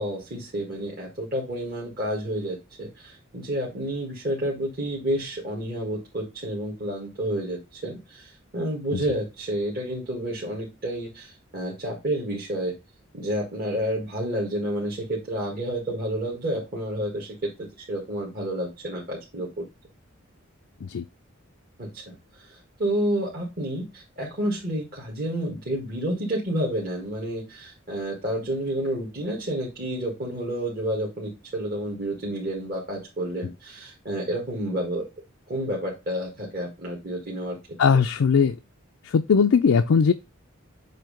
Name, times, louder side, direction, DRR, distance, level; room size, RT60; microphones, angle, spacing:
voice 1, 0.0-12.7 13.1-19.6 21.8-35.0 35.5-37.6, right 1 dB, 45° right, 1.7 m, -30 dB
voice 2, 37.8-38.6 39.0-40.1, left 6 dB, 75° left, 0.4 m, -19 dB
7.6 x 2.8 x 5.0 m
head